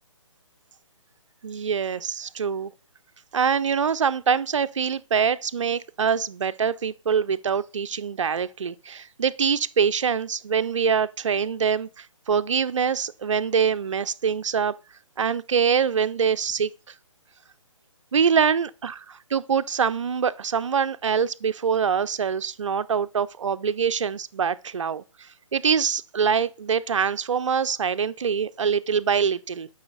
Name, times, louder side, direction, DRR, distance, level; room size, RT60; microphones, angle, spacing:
voice 1, 1.4-2.7 3.3-14.7 15.2-16.7 18.1-19.0 19.3-29.7, right 6 dB, 65° right, 0.5 m, -24 dB
10.5 x 5.5 x 4.0 m
figure-of-eight pair, 140°, 17 cm